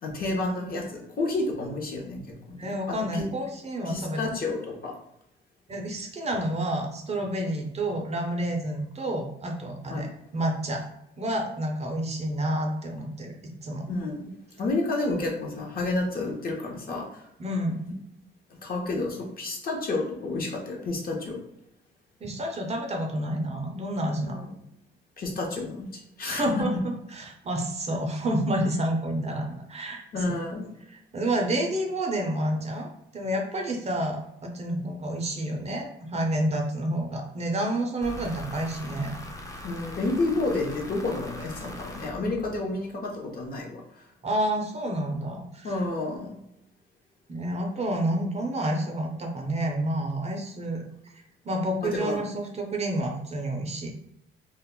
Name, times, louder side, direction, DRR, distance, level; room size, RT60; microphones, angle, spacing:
voice 1, 0.0-3.2 3.8-4.9 9.9-10.0 13.9-14.3 14.6-17.3 18.5-21.4 24.3-24.5 25.2-26.6 30.1-30.7 39.6-44.0 45.6-46.4 51.8-52.2, left 2 dB, 50° left, 0 dB, 0.7 m, -30 dB
voice 2, 2.6-4.2 5.7-10.8 11.2-13.9 17.4-17.9 22.2-24.4 26.3-30.0 31.1-32.9 33.1-39.1 44.2-45.8 47.3-50.8 51.1-53.9, right 1 dB, 35° right, 2 dB, 0.5 m, -29 dB
sound 1, 38.0-43.0, left 1 dB, 15° left, 0.5 m, -41 dB
2.2 x 2.0 x 3.6 m, 0.80 s
cardioid pair, 90°, 20 cm